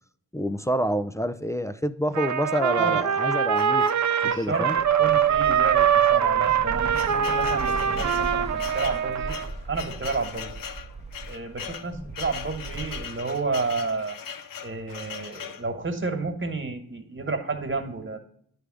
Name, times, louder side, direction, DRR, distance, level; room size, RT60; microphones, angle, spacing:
voice 1, 0.3-3.8 4.4-4.8 11.9-12.1, equal, 10° left, 12 dB, 0.4 m, -27 dB
Trumpet, 2.1-9.5, right 8 dB, 55° right, 0.6 m, -23 dB
sound 1, 3.6-4.4 5.1-5.3 5.6-5.7 6.3-15.7, left 7 dB, 65° left, 0.7 m, -39 dB
Bus / Traffic noise roadway noise, 4.2-13.0, right 3 dB, 20° right, 0.8 m, -38 dB
voice 2, 4.2-9.4 9.7-10.5 11.3-14.2 14.6-18.2, right 4 dB, 35° right, 6 dB, 1.6 m, -31 dB
9.9 x 3.5 x 4.9 m, 0.64 s
supercardioid pair, 45°, 36 cm